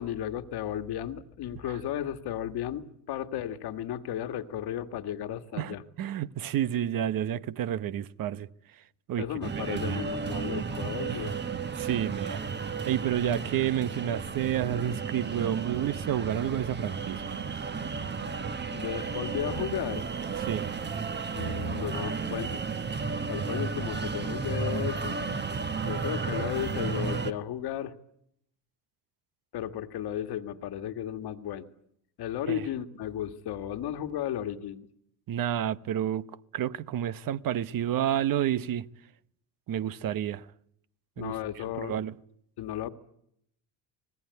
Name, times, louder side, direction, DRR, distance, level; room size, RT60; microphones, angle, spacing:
voice 1, 0.0-5.8 9.2-11.4 18.7-20.0 21.4-22.6 23.3-25.2 25.8-27.9 29.5-31.7 32.2-34.9 41.2-42.0 42.6-42.9, left 11 dB, 65° left, 1.8 m, -34 dB
voice 2, 5.5-8.5 9.1-9.3 9.7-10.0 11.1-11.3 11.8-12.4 12.9-17.4 20.4-20.7 32.5-32.6 35.3-38.9 39.7-40.4 41.2-41.3 41.8-42.1, right 10 dB, 50° right, 1.0 m, -30 dB
sound 1, 9.4-27.3, right 5 dB, 25° right, 1.3 m, -33 dB
29.5 x 20.0 x 9.4 m
cardioid pair, 115°, 42 cm